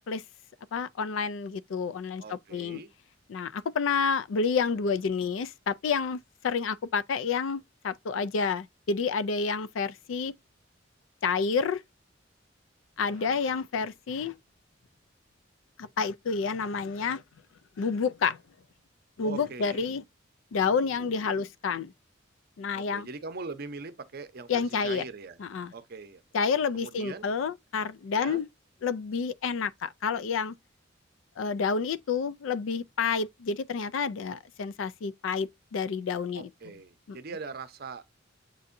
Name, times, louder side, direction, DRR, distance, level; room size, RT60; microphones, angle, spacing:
voice 1, 0.7-2.8 3.3-6.2 6.4-10.3 11.2-11.8 13.0-14.3 15.8-17.2 17.8-18.4 19.2-20.0 20.5-21.9 22.6-23.1 24.5-25.0 25.4-25.7 26.3-28.5 28.8-30.6 31.4-36.5 37.1-37.2, left 5 dB, 80° left, 0.4 m, -29 dB
voice 2, 2.2-2.9 13.0-13.4 19.2-19.9 22.7-25.4 25.7-26.2 26.7-27.3 28.1-28.4 36.3-38.0, right 4 dB, 55° right, 0.6 m, -41 dB
7.5 x 2.6 x 2.5 m
head